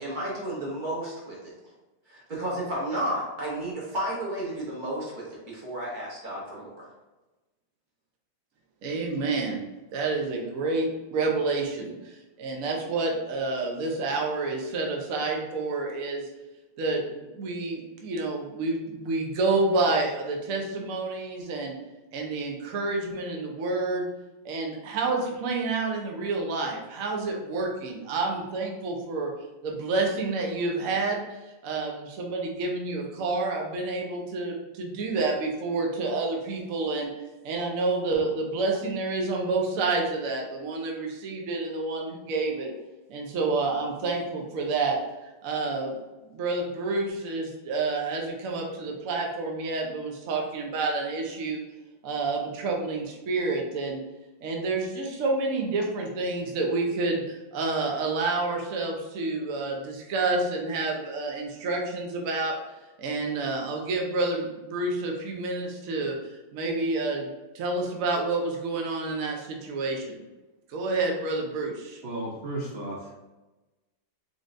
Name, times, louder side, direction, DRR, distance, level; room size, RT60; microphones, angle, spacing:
voice 1, 0.0-1.6 2.1-6.9, right 1 dB, 30° right, -4 dB, 1.1 m, -32 dB
voice 2, 8.8-9.6 9.9-16.3 16.8-21.7 22.1-24.1 24.4-29.3 29.6-31.2 31.6-37.1 37.4-42.7 43.1-45.0 45.4-45.9 46.3-51.6 52.0-54.0 54.4-62.5 63.0-66.2 66.5-67.3 67.5-70.2 70.7-72.0, right 3 dB, 60° right, 0 dB, 1.0 m, -29 dB
voice 3, 72.0-73.2, right 1 dB, 80° right, -5 dB, 0.5 m, -34 dB
3.9 x 3.7 x 2.5 m, 1.1 s
omnidirectional pair, 2.1 m